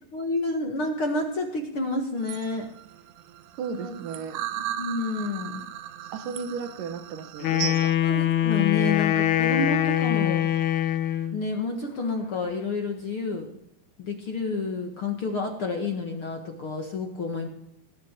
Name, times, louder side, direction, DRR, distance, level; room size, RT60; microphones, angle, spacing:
voice 1, 0.1-2.7 3.7-4.0 4.6-5.6 8.0-10.4 11.3-13.5 14.0-17.5, left 3 dB, 50° left, 2 dB, 1.6 m, -29 dB
sound 1, 2.2-7.9, right 12 dB, 90° right, 3.0 m, -36 dB
voice 2, 3.6-4.3 6.1-7.9, right 6 dB, 65° right, 5 dB, 2.5 m, -34 dB
Wind instrument woodwind instrument, 7.4-11.4, left 11 dB, 75° left, 2.9 m, -23 dB
19.0 x 7.8 x 8.4 m, 0.78 s
omnidirectional pair, 4.8 m